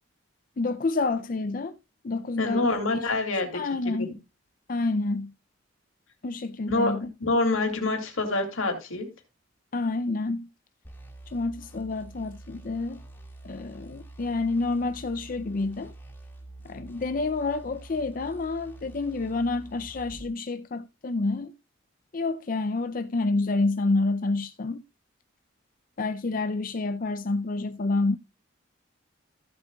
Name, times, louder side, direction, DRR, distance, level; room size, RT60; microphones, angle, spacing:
voice 1, 0.6-1.7 2.0-2.7 3.5-4.1 4.7-5.3 6.2-7.1 9.7-10.5 11.3-13.0 13.4-15.9 16.6-21.5 22.1-24.8 26.0-28.1, left 3 dB, 40° left, 0.4 m, -28 dB
voice 2, 2.4-3.6 4.0-4.1 6.7-6.9 7.2-9.1, left 2 dB, 85° left, 2.5 m, -26 dB
sound 1, 10.8-20.3, right 2 dB, 10° left, 2.0 m, -46 dB
15.0 x 7.6 x 2.3 m
head